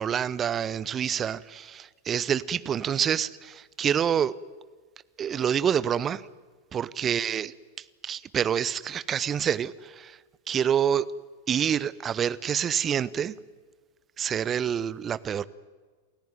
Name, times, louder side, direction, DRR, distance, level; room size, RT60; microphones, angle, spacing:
voice 1, 0.0-4.3 5.2-6.2 6.7-7.5 8.0-10.1 10.5-11.1 11.5-13.3 14.2-15.4, right 8 dB, 25° right, 0.7 m, -27 dB
28.5 x 15.5 x 9.3 m
figure-of-eight pair, 90°, 0 cm